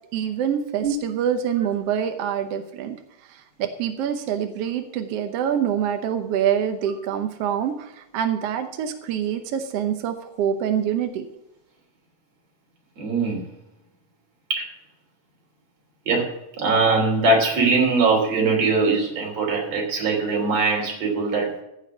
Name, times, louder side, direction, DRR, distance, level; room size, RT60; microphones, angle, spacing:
voice 1, 0.1-3.0 3.2-11.3, right 9 dB, 70° right, 7 dB, 1.5 m, -25 dB
voice 2, 13.0-13.4 14.5-14.7 16.1-16.3 16.6-21.5, right 3 dB, 50° right, 0 dB, 4.2 m, -21 dB
15.0 x 6.4 x 6.0 m, 0.91 s
omnidirectional pair, 3.8 m